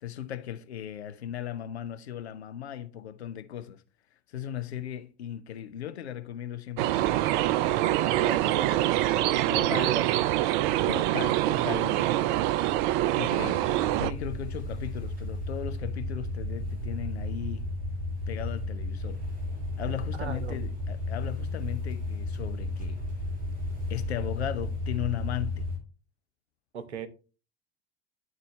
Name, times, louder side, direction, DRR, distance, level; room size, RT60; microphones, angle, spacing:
voice 1, 0.0-3.8 4.3-7.2 9.5-10.0 10.9-12.2 13.2-13.7 14.0-17.7 18.3-19.3 19.8-23.0 23.9-25.6, left 10 dB, 70° left, 0.8 m, -37 dB
sound 1, 6.8-14.1, right 14 dB, 50° right, 0.4 m, -25 dB
voice 2, 8.1-8.9 9.4-10.3 20.2-20.6 26.7-27.1, right 7 dB, 75° right, 0.9 m, -35 dB
sound 2, 13.2-25.8, left 2 dB, 25° right, 2.3 m, -34 dB
11.0 x 4.1 x 3.2 m
figure-of-eight pair, 75°, 33 cm